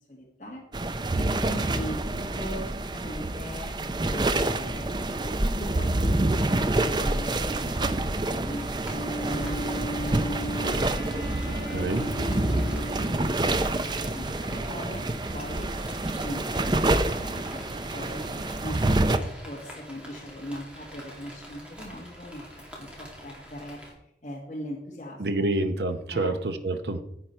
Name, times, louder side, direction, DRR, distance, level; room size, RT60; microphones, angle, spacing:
voice 1, 0.1-10.8 11.1-11.9 12.6-15.7 16.2-18.3 18.6-22.5 22.8-25.5 26.1-26.3, equal, 40° left, -2 dB, 1.6 m, -40 dB
sound 1, 0.7-19.2, right 2 dB, 25° right, 0.5 m, -27 dB
Rain, 6.9-23.9, equal, 5° right, 2.4 m, -46 dB
Wind instrument woodwind instrument, 8.8-13.5, right 1 dB, 60° left, 2.9 m, -36 dB
voice 2, 11.7-12.1 25.2-27.0, right 2 dB, 75° right, 8 dB, 0.8 m, -27 dB
10.5 x 8.2 x 4.4 m, 0.77 s
head